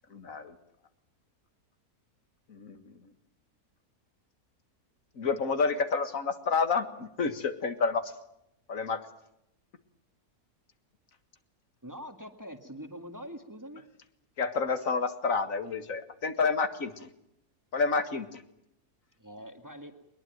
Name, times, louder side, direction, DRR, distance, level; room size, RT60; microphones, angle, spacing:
voice 1, 0.1-0.5 2.5-2.8 5.2-8.1 8.7-9.0 14.4-17.1 17.7-18.4, left 4 dB, 55° left, 10 dB, 2.0 m, -29 dB
voice 2, 11.8-13.8 19.2-19.9, equal, 10° right, 6 dB, 2.0 m, -44 dB
22.0 x 21.0 x 9.3 m, 0.80 s
omnidirectional pair, 1.7 m